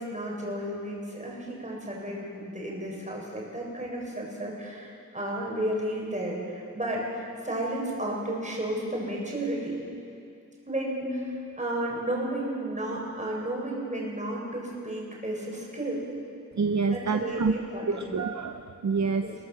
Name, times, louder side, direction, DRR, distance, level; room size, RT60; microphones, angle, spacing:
voice 1, 0.0-9.8 10.7-16.0 16.9-18.1 19.2-19.4, right 1 dB, 25° right, -3 dB, 7.3 m, -33 dB
voice 2, 16.6-17.5 17.9-19.3, right 4 dB, 60° right, 6 dB, 1.0 m, -27 dB
29.0 x 19.0 x 7.7 m, 2.5 s
wide cardioid pair, 100°, 32 cm